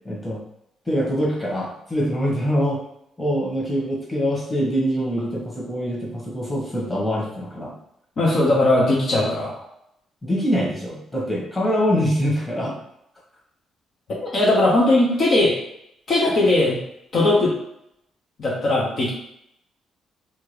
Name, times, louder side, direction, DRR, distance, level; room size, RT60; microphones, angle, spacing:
voice 1, 0.0-0.4 0.9-2.8 3.2-7.7 10.2-12.8, equal, 15° left, -5 dB, 1.2 m, -24 dB
voice 2, 8.2-9.6 14.2-15.5 16.1-16.8 17.1-17.5 18.4-19.1, left 2 dB, 55° left, -4 dB, 0.8 m, -19 dB
2.8 x 2.4 x 3.3 m, 0.78 s
cardioid pair, 90°, 0 cm